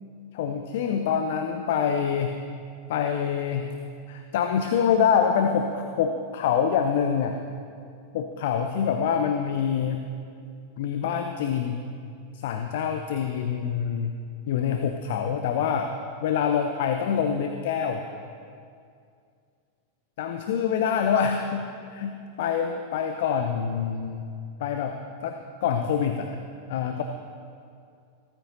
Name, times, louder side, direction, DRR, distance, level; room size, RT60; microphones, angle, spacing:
voice 1, 0.3-2.3 2.9-3.7 4.1-7.4 8.1-10.1 10.8-11.8 12.3-14.1 14.5-15.9 16.2-18.1 20.2-24.2 24.6-26.4 26.7-27.0, left 7 dB, 55° left, 6 dB, 0.6 m, -26 dB
15.5 x 13.5 x 2.8 m, 2.3 s
figure-of-eight pair, 90°, 0 cm